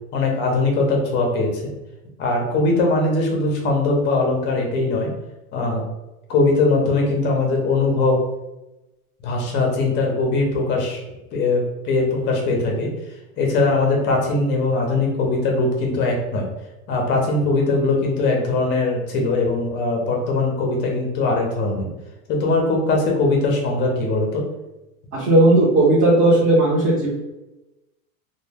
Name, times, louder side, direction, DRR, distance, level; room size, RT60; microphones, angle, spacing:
voice 1, 0.1-1.7 2.2-5.1 5.5-5.8 6.3-8.2 9.2-12.9 13.4-16.5 16.9-21.9 22.3-24.4, left 3 dB, 25° left, 0 dB, 0.5 m, -21 dB
voice 2, 25.1-27.1, right 2 dB, 35° right, -7 dB, 0.7 m, -15 dB
2.1 x 2.1 x 3.3 m, 1.0 s
supercardioid pair, 140°, 43 cm